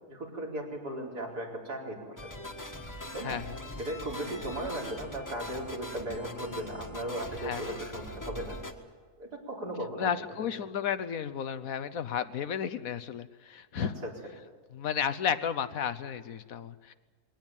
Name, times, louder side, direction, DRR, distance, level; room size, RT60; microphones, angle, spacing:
voice 1, 0.1-2.3 3.1-3.4 3.8-8.6 9.2-10.1 10.4-10.5 13.7-14.1, right 1 dB, 90° right, -2 dB, 5.1 m, -37 dB
sound 1, 2.2-8.7, left 1 dB, 10° left, 1.5 m, -42 dB
voice 2, 3.2-3.6 7.4-7.6 10.0-13.9 14.7-16.9, left 8 dB, 65° left, 13 dB, 1.2 m, -33 dB
22.0 x 18.0 x 9.1 m, 1.4 s
omnidirectional pair, 1.7 m